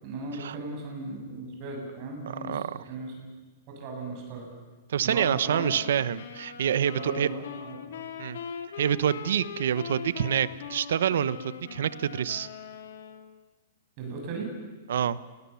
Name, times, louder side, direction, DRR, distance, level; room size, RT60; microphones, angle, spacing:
voice 1, 0.0-3.3 3.8-4.5 5.0-5.7 6.7-7.8 14.0-14.5, right 3 dB, 40° right, 1 dB, 7.4 m, -37 dB
voice 2, 2.4-2.8 4.9-7.3 8.2-8.4 8.8-12.5 14.9-15.2, right 9 dB, 75° right, 16 dB, 1.0 m, -27 dB
sound 1, 5.3-13.3, left 7 dB, 70° left, 2.7 m, -41 dB
29.0 x 19.0 x 7.1 m, 1.3 s
hypercardioid pair, 150°, 0 cm